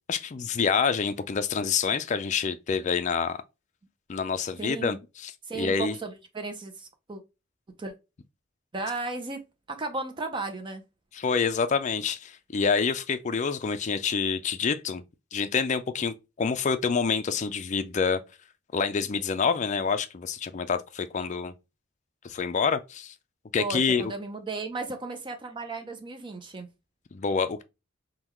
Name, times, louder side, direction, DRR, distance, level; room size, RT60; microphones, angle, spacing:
voice 1, 0.1-3.4 4.1-6.0 11.1-15.0 15.3-18.2 18.7-21.5 22.2-23.1 23.5-24.1 27.1-27.6, left 5 dB, 40° left, 0.4 m, -27 dB
voice 2, 4.6-5.0 5.4-7.2 7.8-7.9 8.7-9.4 9.7-10.8 23.6-26.7, right 3 dB, 25° right, 0.5 m, -35 dB
3.7 x 2.3 x 3.0 m
head